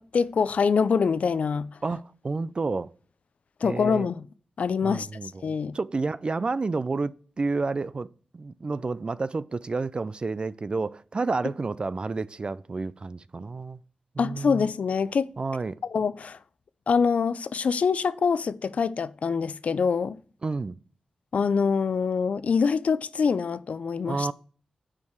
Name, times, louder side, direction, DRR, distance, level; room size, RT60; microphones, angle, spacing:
voice 1, 0.0-1.7 3.6-4.2 4.6-5.1 5.4-5.8 14.2-15.3 15.9-16.4 16.9-20.2 21.3-24.3, left 5 dB, 70° left, 0.5 m, -25 dB
voice 2, 1.8-2.9 3.6-4.1 4.8-13.8 14.2-14.6 15.4-15.8 20.4-20.8 24.1-24.3, right 3 dB, 40° right, 0.4 m, -30 dB
8.5 x 4.6 x 4.6 m
cardioid pair, 55°, 2 cm